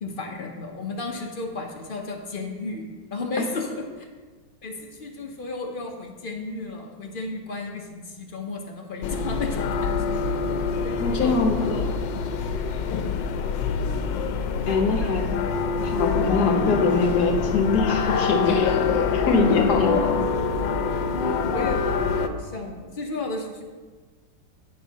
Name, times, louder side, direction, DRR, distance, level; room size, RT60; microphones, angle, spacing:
voice 1, 0.0-4.1 4.6-10.1 10.8-11.4 15.0-15.1 19.8-20.1 21.1-23.6, left 3 dB, 50° left, 1 dB, 0.6 m, -33 dB
sound 1, 9.0-22.3, left 5 dB, 85° left, 1.3 m, -25 dB
voice 2, 11.0-11.9 14.7-15.3 15.8-18.8 19.1-19.9, left 4 dB, 65° left, 2 dB, 1.3 m, -23 dB
9.5 x 5.5 x 4.0 m, 1.4 s
omnidirectional pair, 2.0 m